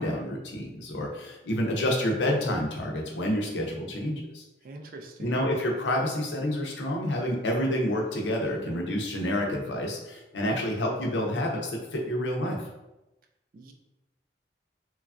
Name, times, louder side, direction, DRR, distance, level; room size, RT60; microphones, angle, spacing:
voice 1, 0.0-4.4 5.2-12.6, left 1 dB, 90° left, 1 dB, 0.6 m, -28 dB
voice 2, 4.6-5.5 13.5-13.7, right 2 dB, 50° right, 4 dB, 0.3 m, -45 dB
3.1 x 2.3 x 2.4 m, 0.97 s
head